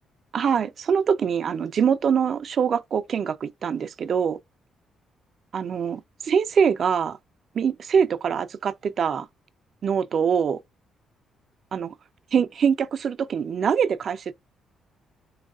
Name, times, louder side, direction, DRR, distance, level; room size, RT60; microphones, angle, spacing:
voice 1, 0.3-4.4 5.5-7.2 7.5-9.3 9.8-10.6 11.7-11.9 12.3-14.3, right 7 dB, 55° right, 0.4 m, -24 dB
3.4 x 2.3 x 2.3 m
cardioid pair, 90°, 0 cm